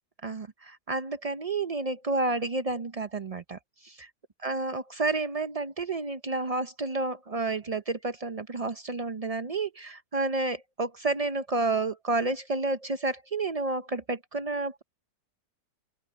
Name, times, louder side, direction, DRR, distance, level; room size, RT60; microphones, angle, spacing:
voice 1, 0.2-4.1 4.4-14.8, right 3 dB, 75° right, 0.3 m, -30 dB
open air
omnidirectional pair, 1.8 m